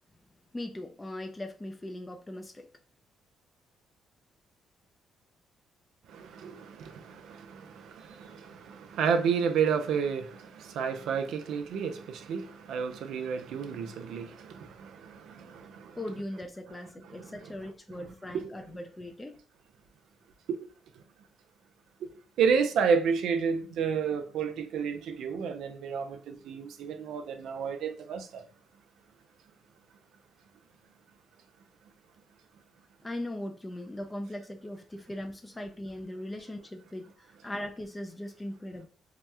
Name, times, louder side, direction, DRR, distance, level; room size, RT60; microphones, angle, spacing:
voice 1, 0.5-2.7 16.0-19.4 33.0-38.9, left 1 dB, 15° left, 0.4 m, -39 dB
voice 2, 6.1-16.0 17.2-17.3 18.3-18.5 20.5-20.7 22.0-22.1 22.4-28.4, right 6 dB, 80° right, 0.4 m, -31 dB
2.9 x 2.1 x 3.4 m
cardioid pair, 90°, 0 cm